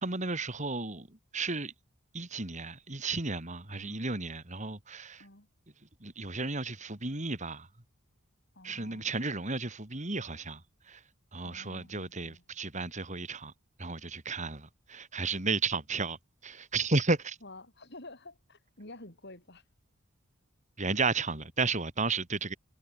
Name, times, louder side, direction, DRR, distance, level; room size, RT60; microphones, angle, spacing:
voice 1, 0.0-1.1 1.3-1.7 2.1-5.2 6.0-7.7 8.6-10.6 10.9-11.0 11.3-13.5 13.8-16.2 16.4-17.4 20.8-22.6, right 3 dB, 35° right, 2.9 m, -33 dB
voice 2, 3.7-4.0 5.2-5.5 8.5-9.2 11.4-12.4 17.4-19.6, left 2 dB, 55° left, 8.0 m, -50 dB
head